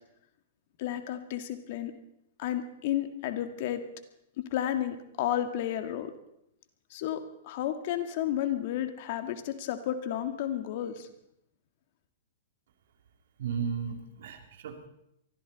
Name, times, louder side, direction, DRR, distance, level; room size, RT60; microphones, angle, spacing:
voice 1, 0.8-1.9 2.4-3.8 4.4-6.1 6.9-11.1, left 11 dB, 55° left, 8 dB, 1.9 m, -32 dB
voice 2, 13.4-14.9, right 6 dB, 65° right, 4 dB, 2.7 m, -35 dB
23.5 x 14.5 x 4.1 m, 0.78 s
hypercardioid pair, 110°, 0 cm